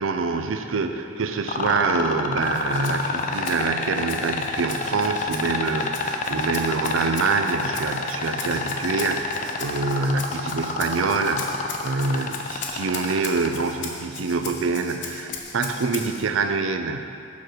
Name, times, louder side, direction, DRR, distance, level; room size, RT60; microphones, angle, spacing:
voice 1, 0.0-17.0, right 4 dB, 80° right, 7 dB, 0.5 m, -25 dB
sound 1, 1.5-13.6 15.3-15.4, left 4 dB, 40° left, 0.5 m, -27 dB
Rattle (instrument), 2.4-16.3, left 5 dB, 60° left, 0.9 m, -39 dB
6.9 x 6.2 x 5.0 m, 2.5 s
head